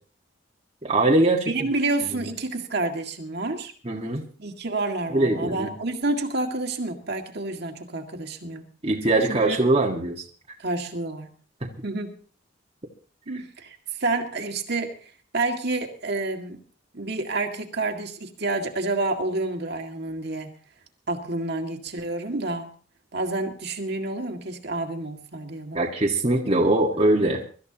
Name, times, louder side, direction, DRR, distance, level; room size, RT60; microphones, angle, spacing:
voice 1, 0.8-1.5 2.0-2.3 3.8-4.3 5.1-5.7 8.8-10.2 25.7-27.4, right 2 dB, 30° right, -1 dB, 1.7 m, -22 dB
voice 2, 1.5-3.7 4.4-8.6 9.3-9.6 10.6-11.3 11.8-12.1 13.3-15.0 15.3-16.6 16.9-20.5 21.1-22.7 23.1-25.8, right 2 dB, 55° right, 3 dB, 2.0 m, -29 dB
24.5 x 13.5 x 2.9 m, 0.42 s
head